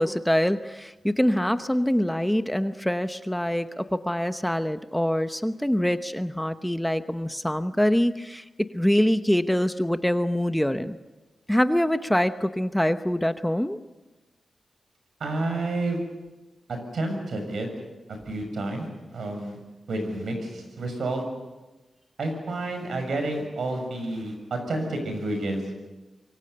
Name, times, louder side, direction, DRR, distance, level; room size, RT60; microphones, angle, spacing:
voice 1, 0.0-11.0 11.5-13.8, equal, 5° left, 9 dB, 0.9 m, -24 dB
voice 2, 15.2-16.0 16.7-17.7 18.1-18.9 19.1-19.6 19.9-21.2 22.2-25.6, right 2 dB, 80° right, 5 dB, 6.7 m, -30 dB
26.0 x 23.0 x 6.8 m, 1.1 s
wide cardioid pair, 105°, 0 cm